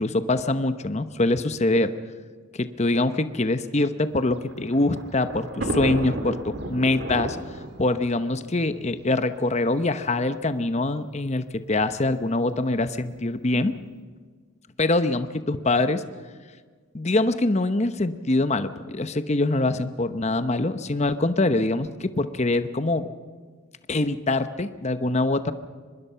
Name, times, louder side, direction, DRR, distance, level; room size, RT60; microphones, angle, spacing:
voice 1, 0.0-1.9 2.5-7.4 7.8-13.7 14.8-16.0 16.9-23.1 23.9-25.5, left 2 dB, 30° left, 11 dB, 0.8 m, -24 dB
Thunder, 4.2-9.5 10.3-10.4 10.6-10.7 11.8-12.1, right 1 dB, 55° right, 2.1 m, -33 dB
24.5 x 21.0 x 5.7 m, 1.6 s
head